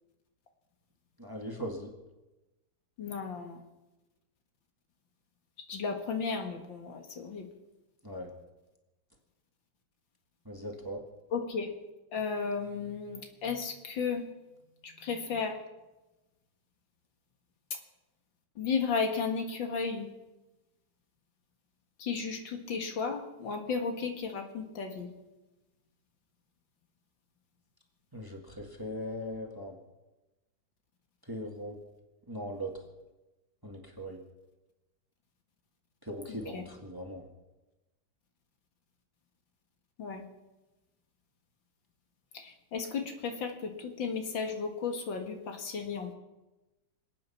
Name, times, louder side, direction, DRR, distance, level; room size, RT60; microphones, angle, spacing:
voice 1, 1.2-1.9 8.0-8.3 10.5-11.0 28.1-29.7 31.2-31.8 32.3-32.7 33.6-34.2 36.0-37.3, equal, 10° right, 2 dB, 1.8 m, -39 dB
voice 2, 3.0-3.6 5.7-7.5 11.3-11.7 12.1-14.2 14.8-15.5 18.6-20.1 22.0-25.1 36.3-36.6 40.0-40.2 42.3-46.1, left 5 dB, 70° left, 4 dB, 2.4 m, -34 dB
26.5 x 9.1 x 5.8 m, 1.1 s
omnidirectional pair, 2.1 m